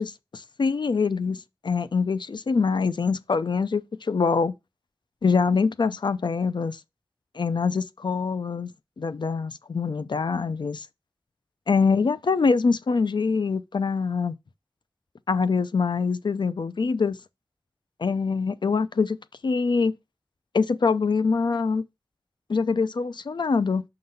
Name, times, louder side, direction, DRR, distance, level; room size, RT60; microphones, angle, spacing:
voice 1, 0.0-4.5 5.2-6.8 7.4-8.7 9.0-10.8 11.7-14.3 15.3-17.2 18.0-19.2 19.4-19.9 20.5-21.8 22.5-23.8, left 5 dB, 75° left, 0.5 m, -24 dB
6.2 x 3.9 x 5.6 m
wide cardioid pair, 60°, 8 cm